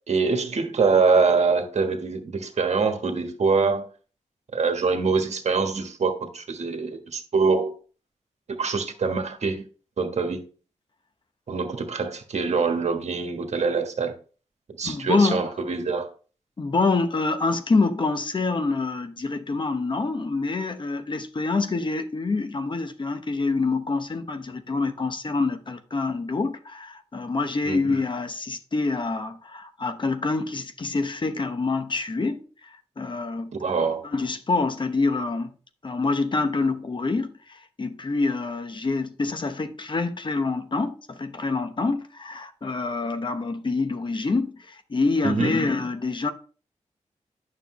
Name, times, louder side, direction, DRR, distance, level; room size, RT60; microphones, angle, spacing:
voice 1, 0.1-3.9 4.5-7.7 8.6-9.7 10.0-10.4 11.5-14.1 14.8-16.1 27.7-27.8 33.6-34.0 45.2-45.5, right 4 dB, 65° right, 1.3 m, -24 dB
voice 2, 14.8-15.4 16.6-33.5 34.0-35.5 35.8-46.3, left 3 dB, 40° left, 0.9 m, -26 dB
9.2 x 6.5 x 3.1 m
cardioid pair, 75°, 12 cm